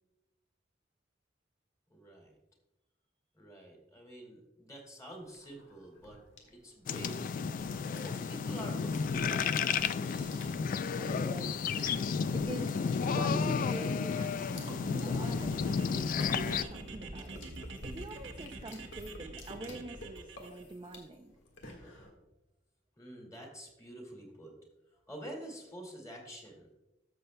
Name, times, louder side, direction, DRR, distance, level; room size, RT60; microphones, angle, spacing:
voice 1, 1.9-2.3 3.3-6.2 6.5-7.3 8.0-10.3 21.8-22.0 23.0-24.5 25.1-26.7, right 1 dB, 15° left, 0 dB, 2.1 m, -48 dB
sound 1, 5.1-22.1, left 1 dB, 85° left, 1.7 m, -51 dB
sound 2, 6.9-16.6, left 5 dB, 45° left, 0.3 m, -32 dB
voice 2, 11.0-17.4 17.8-21.3, right 2 dB, 25° right, 4 dB, 0.4 m, -45 dB
sound 3, 14.6-20.6, right 2 dB, 80° right, 1.2 m, -46 dB
13.5 x 6.8 x 2.2 m, 0.97 s
head